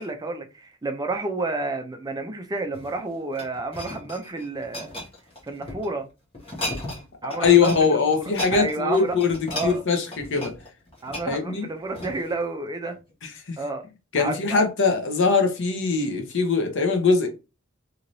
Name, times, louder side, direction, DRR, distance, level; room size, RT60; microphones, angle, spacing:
voice 1, 0.0-5.0 5.4-6.1 7.2-9.2 9.5-9.8 11.0-13.0 13.6-13.8 14.2-14.6, right 2 dB, 20° right, 0.4 m, -30 dB
sound 1, 2.6-5.9 6.3-7.0 7.3-7.8 8.1-12.4 13.0-13.1, left 1 dB, 25° left, 1.2 m, -36 dB
voice 2, 7.4-10.5 11.2-11.7 13.2-13.6 14.1-17.3, left 5 dB, 65° left, 0.8 m, -22 dB
3.1 x 2.8 x 2.6 m
head